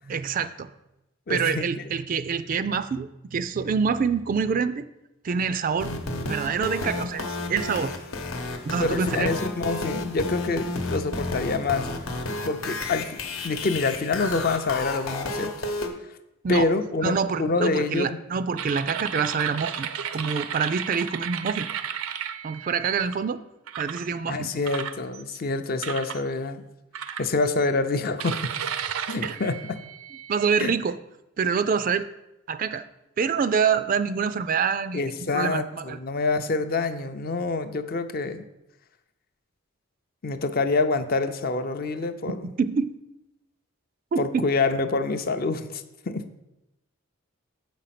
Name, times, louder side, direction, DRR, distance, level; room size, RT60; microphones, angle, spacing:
voice 1, 0.1-0.7 1.3-4.9 5.2-5.9 6.2-7.9 8.6-9.3 16.4-16.7 17.0-21.7 22.4-23.4 23.8-24.5 29.2-29.4 30.3-31.0 31.4-32.1 32.5-32.8 33.2-35.0 35.3-36.0 42.3-43.0 44.1-44.5, right 6 dB, 40° right, 13 dB, 0.3 m, -26 dB
voice 2, 1.3-1.8 8.7-11.9 12.4-13.2 13.4-15.5 16.5-18.2 24.3-26.6 27.2-28.5 29.1-29.8 30.6-30.7 34.9-38.4 40.2-42.5 44.2-46.3, left 3 dB, 45° left, 9 dB, 0.5 m, -26 dB
sound 1, 5.8-15.9, left 2 dB, 80° left, 1.0 m, -32 dB
sound 2, 18.6-23.1 23.7-24.1 24.6-25.4 25.8-26.2 26.9-27.7 28.2-30.5, right 8 dB, 85° right, 0.5 m, -33 dB
7.6 x 5.2 x 5.8 m, 0.93 s
head